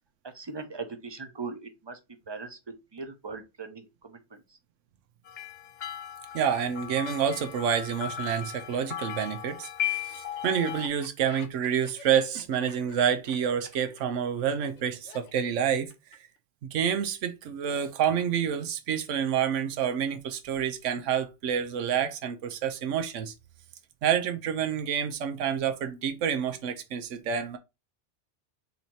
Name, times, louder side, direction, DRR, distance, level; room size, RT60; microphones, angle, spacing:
voice 1, 0.3-2.0 2.3-2.6 2.9-4.2, right 4 dB, 30° right, 0.5 m, -39 dB
sound 1, 5.3-10.9, left 11 dB, 60° left, 0.5 m, -36 dB
voice 2, 6.3-15.9 16.7-23.3 24.0-27.6, right 8 dB, 90° right, 1.0 m, -28 dB
Laughter, 10.6-16.4, left 5 dB, 75° left, 1.1 m, -50 dB
4.1 x 2.7 x 4.4 m
omnidirectional pair, 1.2 m